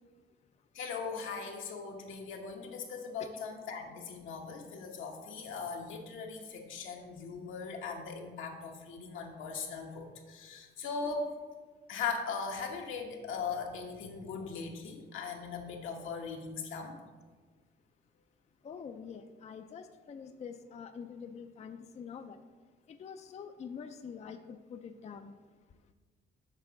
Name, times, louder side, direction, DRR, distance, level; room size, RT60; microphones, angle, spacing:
voice 1, 0.7-11.3 11.9-17.0, left 5 dB, 85° left, 2 dB, 1.1 m, -39 dB
voice 2, 18.6-22.4 22.9-25.4, left 6 dB, 35° left, 8 dB, 0.4 m, -45 dB
6.8 x 3.5 x 5.7 m, 1.4 s
cardioid pair, 90°, 20 cm